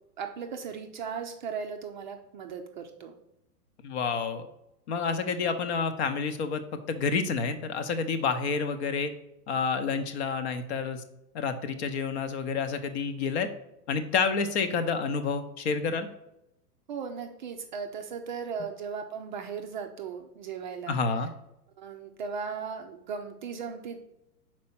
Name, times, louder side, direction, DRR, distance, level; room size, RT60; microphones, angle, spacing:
voice 1, 0.2-3.2 16.9-21.0 21.8-24.0, right 6 dB, 30° right, 4 dB, 0.4 m, -37 dB
voice 2, 3.8-4.5 4.9-6.6 6.9-9.1 9.5-11.0 11.3-13.5 13.9-16.1 20.9-21.3, left 5 dB, 45° left, 9 dB, 0.8 m, -29 dB
5.3 x 4.4 x 5.9 m, 0.87 s
hypercardioid pair, 115°, 48 cm